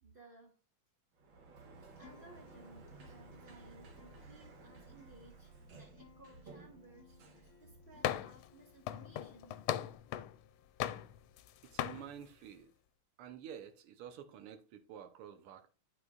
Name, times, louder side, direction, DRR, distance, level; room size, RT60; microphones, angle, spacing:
voice 1, 0.0-0.6 2.0-9.5 11.0-11.1, right 2 dB, 25° right, 1.6 m, -60 dB
Sliding door, 1.1-8.3, right 3 dB, 65° right, 2.1 m, -56 dB
Acoustic guitar, 2.0-9.9, left 8 dB, 65° left, 1.0 m, -64 dB
sound 1, 8.0-8.5 8.9-10.4 10.8-11.5 11.8-12.0, left 12 dB, 80° left, 1.3 m, -37 dB
voice 2, 11.6-12.7 13.2-15.7, right 9 dB, 85° right, 1.8 m, -50 dB
11.5 x 4.9 x 2.4 m
omnidirectional pair, 2.4 m